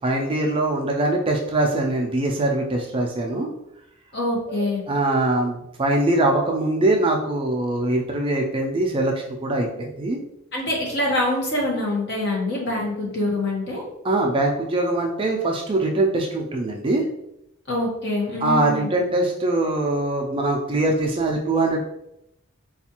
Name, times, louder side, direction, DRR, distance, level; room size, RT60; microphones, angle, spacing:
voice 1, 0.0-3.5 4.9-10.2 14.0-17.0 18.4-21.8, right 2 dB, 25° right, 1 dB, 0.3 m, -22 dB
voice 2, 4.1-4.8 10.5-13.8 17.7-18.9, left 1 dB, 50° left, -2 dB, 1.0 m, -25 dB
4.2 x 2.3 x 2.8 m, 0.82 s
head